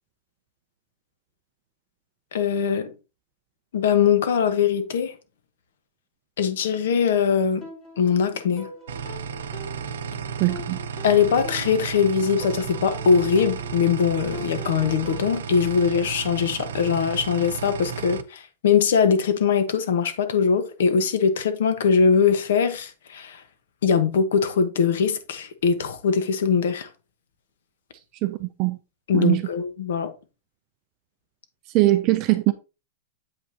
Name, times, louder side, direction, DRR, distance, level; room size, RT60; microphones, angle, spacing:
voice 1, 2.3-2.9 3.7-5.1 6.4-7.6 8.0-8.7 11.0-23.4 23.8-26.9 29.1-30.1, left 6 dB, 70° left, 1.1 m, -21 dB
sound 1, 7.6-15.3, left 1 dB, 20° left, 1.9 m, -42 dB
sound 2, 8.9-18.2, right 7 dB, 85° right, 0.7 m, -33 dB
voice 2, 10.4-10.8 28.2-28.8 29.1-29.4 31.7-32.5, right 18 dB, 30° right, 0.4 m, -21 dB
8.0 x 5.4 x 2.8 m
supercardioid pair, 175°, 0 cm